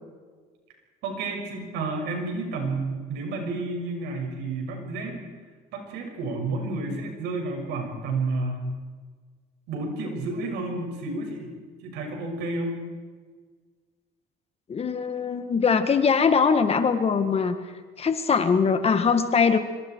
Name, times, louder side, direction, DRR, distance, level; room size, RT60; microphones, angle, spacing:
voice 1, 1.0-5.2 5.7-8.6 9.7-11.5 11.8-12.8, right 3 dB, 90° right, 2 dB, 6.6 m, -30 dB
voice 2, 14.7-17.6 18.0-19.6, left 5 dB, 35° left, 9 dB, 1.9 m, -22 dB
25.5 x 24.5 x 4.8 m, 1.5 s
cardioid pair, 110°, 17 cm